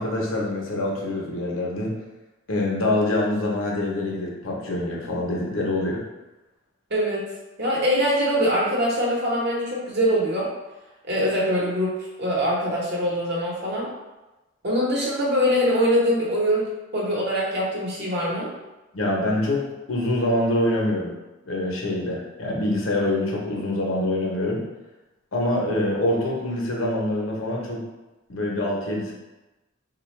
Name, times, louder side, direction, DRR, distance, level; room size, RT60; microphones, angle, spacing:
voice 1, 0.0-1.9 2.5-6.0 18.9-19.6 19.9-21.1 21.5-24.6 25.3-27.8 28.3-29.1, left 1 dB, 70° left, -2 dB, 0.7 m, -25 dB
voice 2, 6.9-7.2 7.6-10.5 11.1-13.9 14.6-18.5, equal, 50° right, -4 dB, 0.9 m, -23 dB
3.8 x 2.3 x 3.1 m, 1.1 s
head